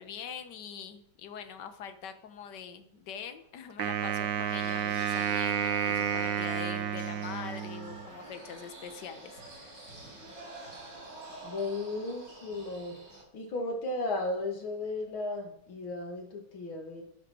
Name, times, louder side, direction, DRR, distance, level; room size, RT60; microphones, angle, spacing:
voice 1, 0.0-9.9, left 7 dB, 60° left, 8 dB, 1.7 m, -43 dB
Wind instrument woodwind instrument, 3.8-8.1, right 8 dB, 70° right, 1.6 m, -31 dB
sound 1, 4.5-13.2, right 2 dB, 45° right, 5.0 m, -48 dB
voice 2, 11.4-13.0 13.3-17.0, left 2 dB, 90° left, 2 dB, 3.0 m, -35 dB
11.5 x 9.2 x 6.2 m, 0.76 s
omnidirectional pair, 2.2 m